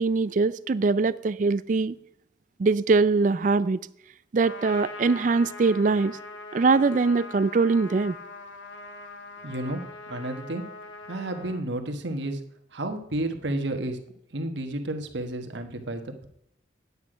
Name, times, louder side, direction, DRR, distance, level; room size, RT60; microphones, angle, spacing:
voice 1, 0.0-2.0 2.6-3.8 4.3-6.2 6.5-8.2, right 4 dB, 45° right, 17 dB, 0.3 m, -22 dB
Trumpet, 4.4-11.6, left 2 dB, 80° left, 1.3 m, -42 dB
voice 2, 9.4-9.8 10.1-10.6 11.1-12.4 12.7-14.0 14.3-16.3, right 1 dB, 75° right, 6 dB, 1.2 m, -31 dB
9.5 x 8.2 x 4.9 m, 0.73 s
head